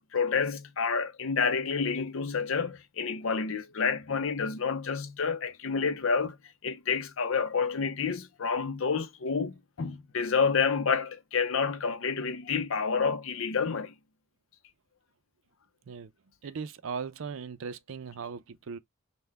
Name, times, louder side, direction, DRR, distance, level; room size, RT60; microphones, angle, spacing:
voice 1, 0.1-6.4 6.6-13.9, left 5 dB, 65° left, 0.6 m, -29 dB
voice 2, 16.4-18.8, right 5 dB, 65° right, 0.5 m, -38 dB
5.6 x 2.2 x 3.3 m
head